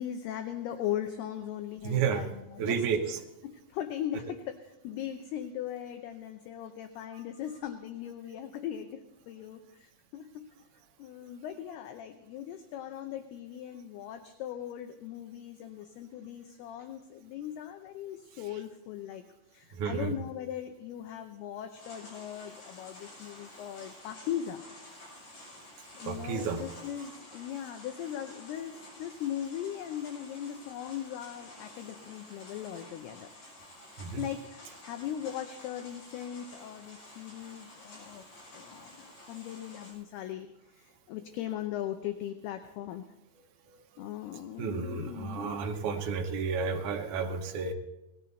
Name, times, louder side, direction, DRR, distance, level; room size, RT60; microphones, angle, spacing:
voice 1, 0.0-3.2 3.4-9.0 9.3-10.4 11.0-19.2 19.5-24.6 26.0-33.3 34.2-38.3 38.5-43.1 44.0-45.7, left 10 dB, 80° left, 7 dB, 2.5 m, -39 dB
voice 2, 1.8-2.2 2.6-3.2 19.7-20.1 26.0-26.6 34.0-34.2 44.0-44.1 44.6-47.7, right 6 dB, 85° right, 2 dB, 1.7 m, -31 dB
sound 1, 21.8-39.9, left 1 dB, 55° left, 8.1 m, -51 dB
18.0 x 13.5 x 4.0 m, 0.94 s
omnidirectional pair, 5.2 m